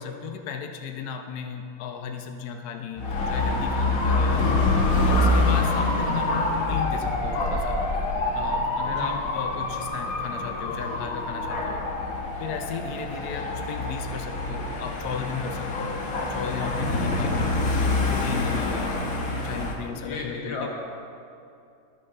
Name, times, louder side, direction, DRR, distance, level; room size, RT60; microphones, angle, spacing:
voice 1, 0.0-4.5 5.0-7.8 8.3-11.9 12.4-16.0 16.3-17.6 18.1-19.0 19.4-20.7, left 6 dB, 65° left, 5 dB, 1.1 m, -35 dB
Dog / Motorcycle, 3.0-19.7, left 2 dB, 50° left, 1.6 m, -26 dB
voice 2, 19.9-20.7, left 3 dB, 80° left, -1 dB, 2.4 m, -34 dB
23.0 x 7.8 x 3.7 m, 2.5 s
omnidirectional pair, 2.1 m